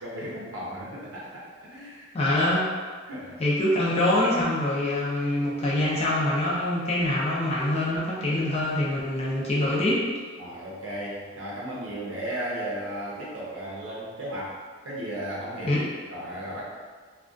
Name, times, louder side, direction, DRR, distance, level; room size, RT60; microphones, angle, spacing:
voice 1, 0.0-2.1 3.1-3.4 10.4-16.6, right 1 dB, 75° right, -6 dB, 0.6 m, -35 dB
voice 2, 2.1-2.7 3.4-10.1 15.6-15.8, left 1 dB, 30° left, -6 dB, 0.4 m, -24 dB
2.3 x 2.2 x 2.5 m, 1.5 s
head